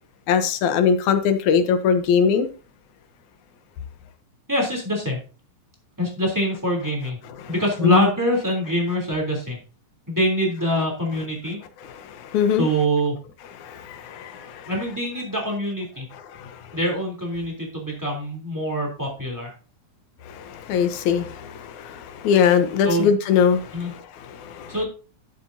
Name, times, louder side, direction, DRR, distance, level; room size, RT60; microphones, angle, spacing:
voice 1, 0.3-2.5 7.4-7.5 7.8-8.1 12.0-12.7 13.6-14.7 16.3-16.6 20.3-24.7, left 7 dB, 80° left, 2.4 m, -22 dB
voice 2, 4.5-5.2 6.0-7.2 7.5-9.6 10.1-11.6 12.6-13.1 14.7-16.1 16.7-19.5 22.8-23.1 23.7-23.9 24.7-24.9, equal, 5° right, 3.0 m, -24 dB
12.0 x 7.6 x 2.8 m
omnidirectional pair, 3.4 m